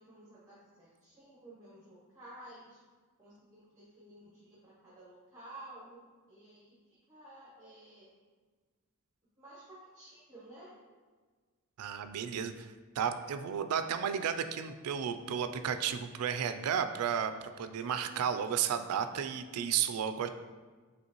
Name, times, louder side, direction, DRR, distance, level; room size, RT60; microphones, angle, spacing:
voice 1, 0.0-2.8 3.2-6.0 6.3-6.7 7.1-8.1 9.4-10.7, right 1 dB, 15° right, -8 dB, 0.9 m, -53 dB
voice 2, 11.8-17.3 17.6-20.3, right 8 dB, 75° right, 9 dB, 0.3 m, -33 dB
5.4 x 3.2 x 3.0 m, 1.4 s
head